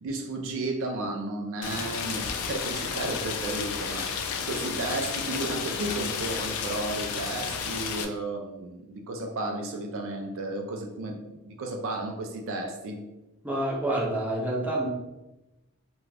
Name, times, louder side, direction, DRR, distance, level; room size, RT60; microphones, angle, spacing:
voice 1, 0.0-13.0, right 2 dB, 65° right, 3 dB, 0.4 m, -33 dB
Rain, 1.6-8.0, left 6 dB, 80° left, 0.3 m, -32 dB
voice 2, 13.4-14.9, right 1 dB, 5° right, -5 dB, 0.5 m, -28 dB
2.4 x 2.2 x 3.2 m, 0.98 s
head